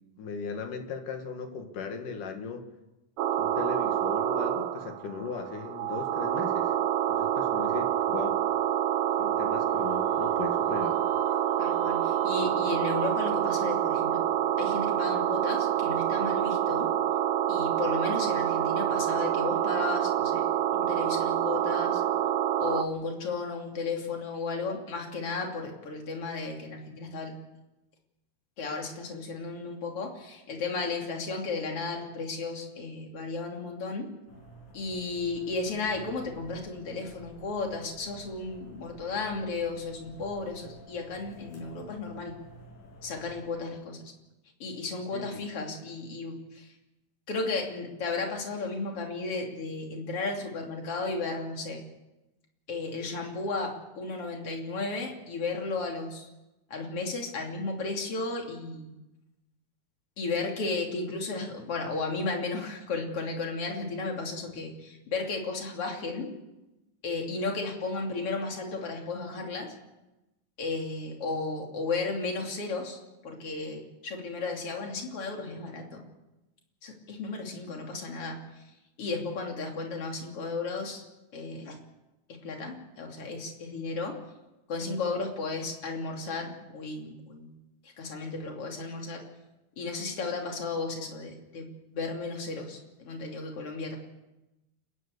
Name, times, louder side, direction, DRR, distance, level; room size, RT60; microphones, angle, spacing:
voice 1, 0.2-2.6 3.4-6.8 7.1-8.4 9.2-11.0 43.5-43.7 45.1-45.4, left 5 dB, 70° left, 5 dB, 3.3 m, -37 dB
sound 1, 3.2-22.8, right 11 dB, 70° right, 1.8 m, -27 dB
sound 2, 9.6-15.0, right 5 dB, 55° right, 3.3 m, -43 dB
voice 2, 11.6-14.2 14.6-16.9 17.5-20.4 20.7-22.0 22.6-27.3 28.6-34.1 34.7-42.4 43.0-44.1 44.6-46.7 47.3-51.8 52.7-56.3 56.7-58.9 60.2-66.3 67.0-69.7 70.6-76.0 76.8-78.6 79.0-81.0 81.3-81.8 82.4-84.1 84.7-87.5 87.8-89.2 89.8-91.7 91.9-94.0, left 3 dB, 45° left, 1 dB, 3.7 m, -34 dB
sound 3, 34.3-43.5, right 1 dB, 90° left, 6.2 m, -51 dB
29.5 x 11.0 x 8.3 m, 1.0 s
omnidirectional pair, 3.9 m